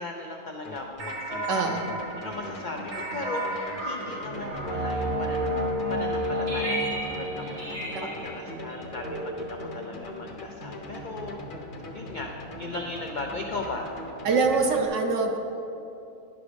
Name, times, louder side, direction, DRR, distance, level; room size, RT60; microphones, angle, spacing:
voice 1, 0.0-1.7 2.2-11.4 11.9-12.3 12.6-13.9, left 2 dB, 80° left, 2 dB, 0.4 m, -37 dB
sound 1, 0.6-14.9, left 1 dB, 40° left, 0.8 m, -41 dB
sound 2, 1.0-9.9, equal, 90° right, 2.5 m, -32 dB
voice 2, 1.5-1.9 7.9-8.2 14.2-15.4, right 4 dB, 60° right, 4 dB, 1.1 m, -24 dB
10.0 x 6.0 x 5.1 m, 2.9 s
omnidirectional pair, 1.6 m